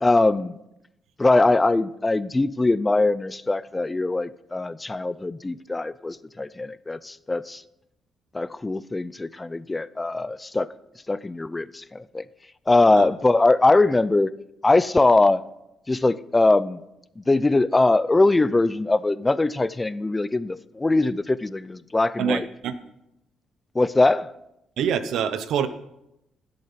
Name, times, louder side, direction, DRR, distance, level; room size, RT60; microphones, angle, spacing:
voice 1, 0.0-0.5 1.2-7.6 8.3-10.7 11.1-12.3 12.7-14.3 14.6-15.4 15.9-16.8 17.2-22.5 23.7-24.3, left 2 dB, 20° left, 0.5 m, -21 dB
voice 2, 22.2-22.7 24.8-25.7, right 8 dB, 80° right, 0.9 m, -25 dB
16.5 x 7.8 x 5.8 m
cardioid pair, 90°, 0 cm